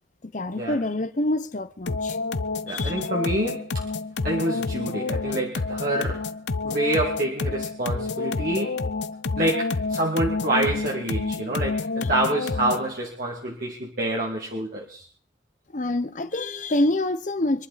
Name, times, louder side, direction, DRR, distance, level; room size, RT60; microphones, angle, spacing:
voice 1, 0.2-2.2 2.7-3.1 12.0-12.1 15.7-17.7, left 1 dB, 45° left, 0.9 m, -26 dB
sound 1, 1.9-12.9, left 3 dB, 75° left, 0.7 m, -29 dB
voice 2, 2.7-3.9 4.2-6.3 6.6-8.9 9.4-15.1, right 1 dB, 50° right, 2.2 m, -27 dB
25.0 x 11.5 x 4.2 m
head